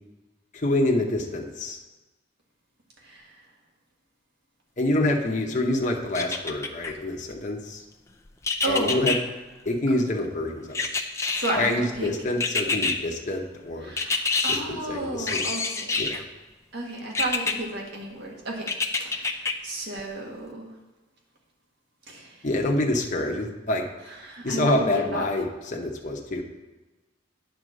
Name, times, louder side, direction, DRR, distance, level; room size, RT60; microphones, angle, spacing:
voice 1, 0.5-1.8 4.8-7.8 8.6-9.2 9.6-10.9 11.5-13.9 14.5-15.4 16.0-16.3 22.4-23.9 24.4-26.4, left 1 dB, 40° left, 1 dB, 0.9 m, -26 dB
sound 1, 6.1-6.9 8.4-9.2 10.7-11.7 12.4-13.0 14.0-14.6 15.3-16.2 17.1-17.5 18.7-19.5 20.0-20.1, left 4 dB, 15° left, 0.4 m, -26 dB
voice 2, 8.6-9.0 11.3-12.1 13.8-16.1 16.7-18.7 19.0-20.7 22.1-22.4 24.2-25.3, right 2 dB, 55° right, -1 dB, 1.7 m, -32 dB
9.4 x 4.4 x 6.3 m, 1.2 s
head